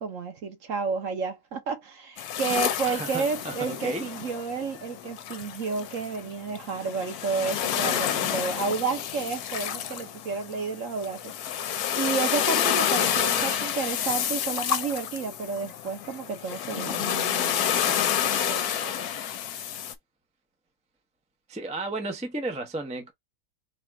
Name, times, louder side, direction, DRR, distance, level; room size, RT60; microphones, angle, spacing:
voice 1, 0.0-19.0, right 5 dB, 60° right, 1.4 m, -31 dB
sound 1, 2.2-19.9, left 10 dB, 80° left, 1.2 m, -29 dB
voice 2, 2.9-4.0 13.1-13.6 21.5-23.1, right 2 dB, 10° right, 0.5 m, -33 dB
4.1 x 2.5 x 4.5 m
omnidirectional pair, 1.6 m